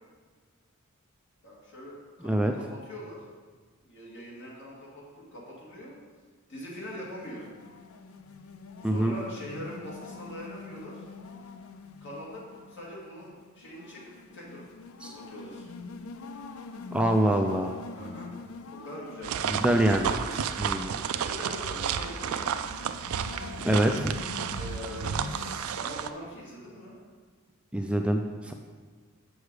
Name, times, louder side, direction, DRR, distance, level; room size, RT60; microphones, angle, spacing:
voice 1, 1.4-3.2 3.8-6.0 6.5-7.5 8.8-11.1 12.0-14.6 15.0-15.7 17.2-17.6 17.9-18.3 18.7-20.7 21.1-22.6 24.5-27.0, left 1 dB, 60° left, -5 dB, 2.3 m, -43 dB
sound 1, 6.8-25.6, left 4 dB, 75° left, 0.5 m, -44 dB
voice 2, 16.9-17.7 19.5-20.1 20.6-21.0 23.6-24.1 27.7-28.5, right 1 dB, 5° right, 3 dB, 0.3 m, -25 dB
sound 2, 19.2-26.1, right 7 dB, 80° right, 0.4 m, -32 dB
7.0 x 6.5 x 4.8 m, 1.5 s
head